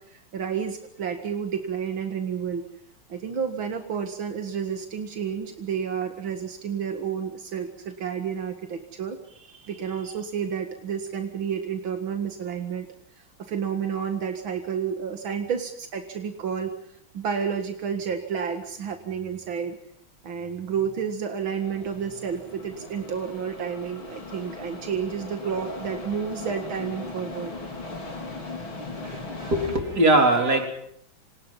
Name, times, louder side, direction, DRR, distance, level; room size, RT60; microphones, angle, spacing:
voice 1, 0.0-2.6 3.1-12.9 13.4-16.7 17.1-19.8 20.2-27.5, right 7 dB, 85° right, 6 dB, 2.6 m, -30 dB
sound 1, 21.5-29.8, left 3 dB, 85° left, 5.3 m, -39 dB
voice 2, 29.0-30.7, right 2 dB, 55° right, 4 dB, 4.4 m, -21 dB
29.0 x 26.5 x 5.6 m, 0.70 s
omnidirectional pair, 2.1 m